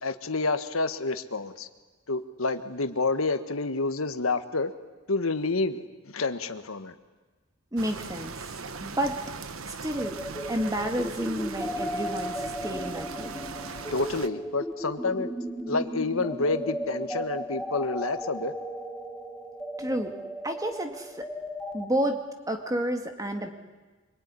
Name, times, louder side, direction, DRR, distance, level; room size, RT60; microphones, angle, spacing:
voice 1, 0.0-1.7 2.1-4.7 5.1-6.9 13.9-15.3 15.7-18.5, left 3 dB, 85° left, 9 dB, 1.5 m, -29 dB
voice 2, 7.7-8.4 8.8-9.2 9.6-10.2 10.5-13.4 19.8-20.1 20.4-21.3 21.7-23.5, right 1 dB, 15° right, 5 dB, 2.1 m, -30 dB
sound 1, 7.8-14.3, right 4 dB, 85° right, 1.2 m, -39 dB
sound 2, 10.0-21.8, equal, ahead, 1.4 m, -35 dB
25.5 x 23.5 x 9.8 m, 1.3 s
head